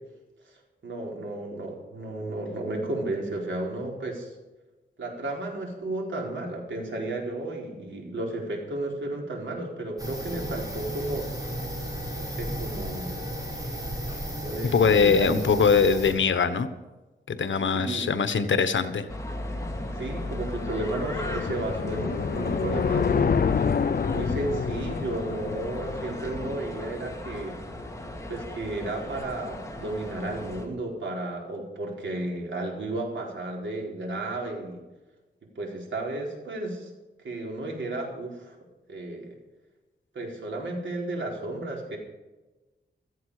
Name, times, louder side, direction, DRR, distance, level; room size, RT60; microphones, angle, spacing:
voice 1, 0.8-4.4 5.0-11.3 12.2-13.2 14.3-15.5 17.7-18.1 19.9-23.5 24.1-27.5 28.3-34.8 35.5-36.9 37.2-38.6 38.9-39.3 40.1-42.0, right 2 dB, 90° right, -1 dB, 4.3 m, -33 dB
sound 1, 10.0-16.1, equal, 20° right, 5.6 m, -34 dB
voice 2, 14.7-16.7 17.3-19.1, left 5 dB, 90° left, 11 dB, 1.2 m, -22 dB
sound 2, 19.1-30.7, left 1 dB, 15° left, 2.2 m, -37 dB
sound 3, 19.5-26.9, left 6 dB, 55° left, 0.6 m, -28 dB
16.0 x 14.0 x 4.9 m, 1.1 s
wide cardioid pair, 120°, 19 cm